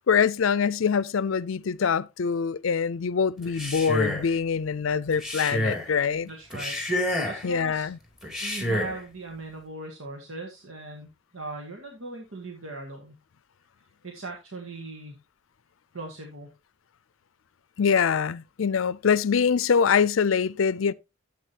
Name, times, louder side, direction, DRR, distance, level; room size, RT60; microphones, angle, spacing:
voice 1, 0.1-6.3 7.4-8.0 17.8-20.9, left 6 dB, 80° left, 0.5 m, -24 dB
Male speech man speaking, 3.4-4.3 5.1-5.9 6.5-7.5 8.2-9.0, left 1 dB, ahead, 2.8 m, -28 dB
voice 2, 6.2-6.8 7.2-7.9 8.4-11.1 11.3-13.2 14.0-15.2 15.9-16.5, right 2 dB, 90° right, 2.1 m, -39 dB
12.5 x 8.2 x 2.9 m
head